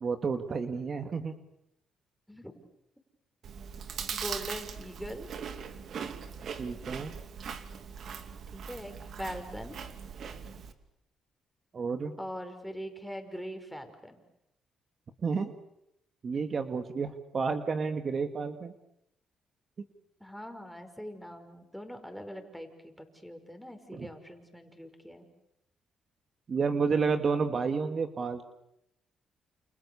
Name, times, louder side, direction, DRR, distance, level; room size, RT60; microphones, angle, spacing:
voice 1, 0.0-1.3 6.6-7.2 11.7-12.2 15.2-15.5 16.2-18.7 23.9-24.1 26.5-28.5, right 5 dB, 45° right, 7 dB, 2.0 m, -30 dB
Chewing mastication, 3.4-10.7, right 6 dB, 60° right, 2.6 m, -40 dB
voice 2, 4.1-5.3 8.5-9.8 12.2-14.2 20.2-25.3, equal, ahead, 5 dB, 5.3 m, -42 dB
29.5 x 28.5 x 7.1 m, 0.82 s
cardioid pair, 90°, 0 cm